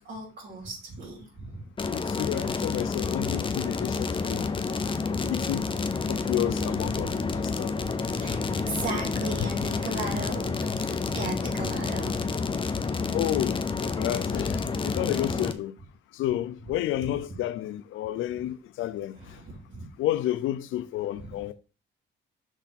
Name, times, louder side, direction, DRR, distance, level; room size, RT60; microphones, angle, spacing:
voice 1, 0.1-1.7 4.8-5.3 6.0-6.2 6.5-7.3 8.1-12.4 14.5-14.7 17.0-17.4 18.3-18.4 19.1-19.9 21.2-21.4, right 2 dB, 65° right, 3.4 m, -38 dB
sound 1, 1.8-15.5, left 4 dB, 25° left, 0.7 m, -29 dB
voice 2, 1.9-4.8 5.3-5.6 6.1-7.7 13.1-15.7 16.1-19.4 20.0-21.5, left 13 dB, 80° left, 0.5 m, -31 dB
6.3 x 3.4 x 5.8 m
cardioid pair, 90°, 20 cm